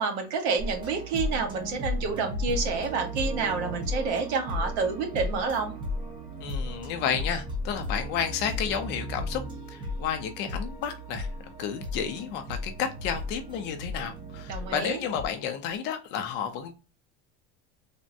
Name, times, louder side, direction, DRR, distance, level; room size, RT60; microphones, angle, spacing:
voice 1, 0.0-5.7 14.5-15.0, right 5 dB, 75° right, 4 dB, 1.2 m, -29 dB
sound 1, 0.6-15.3, left 1 dB, 15° right, 0.6 m, -35 dB
voice 2, 6.4-9.4 9.7-11.3 11.6-16.7, left 8 dB, 35° left, 7 dB, 0.4 m, -31 dB
3.5 x 2.0 x 2.5 m, 0.30 s
cardioid pair, 175°, 33 cm